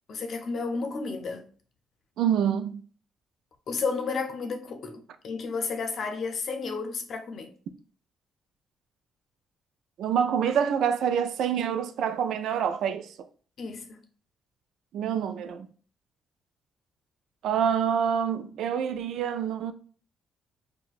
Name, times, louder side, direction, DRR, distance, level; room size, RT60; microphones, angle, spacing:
voice 1, 0.1-1.4 3.7-7.5 13.6-14.0, left 4 dB, 60° left, 0.6 m, -32 dB
voice 2, 2.2-2.8 10.0-13.1 14.9-15.7 17.4-19.7, right 8 dB, 75° right, 0.3 m, -26 dB
4.6 x 2.2 x 2.4 m
cardioid pair, 90°, 0 cm